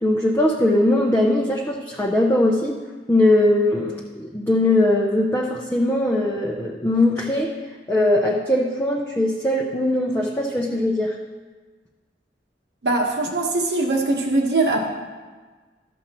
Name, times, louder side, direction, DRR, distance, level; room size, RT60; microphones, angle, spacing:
voice 1, 0.0-2.8 3.1-7.5 7.9-11.1, left 1 dB, 10° left, -3 dB, 0.6 m, -20 dB
voice 2, 12.8-14.9, right 2 dB, 75° right, 1 dB, 1.3 m, -21 dB
13.0 x 7.1 x 3.0 m, 1.4 s
head